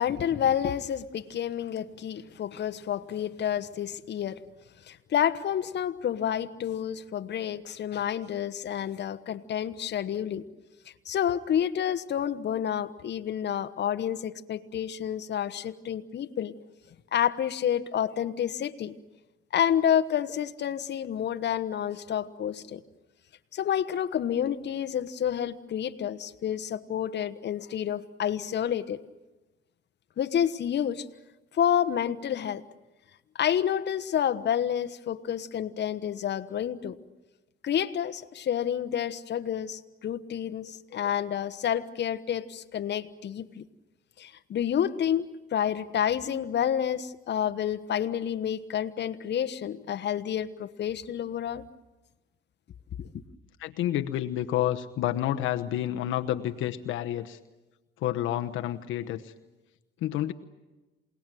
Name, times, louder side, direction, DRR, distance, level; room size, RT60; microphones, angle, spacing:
voice 1, 0.0-4.4 4.9-10.4 11.1-16.5 17.1-18.9 19.5-22.8 23.5-29.0 30.2-31.0 31.5-32.6 33.4-37.0 37.6-43.6 44.2-51.6 53.0-53.1, left 9 dB, 60° left, 10 dB, 1.2 m, -29 dB
voice 2, 53.6-57.4 58.0-59.3 60.0-60.3, left 12 dB, 90° left, 7 dB, 1.0 m, -29 dB
28.0 x 19.0 x 9.2 m, 1.1 s
cardioid pair, 90°, 20 cm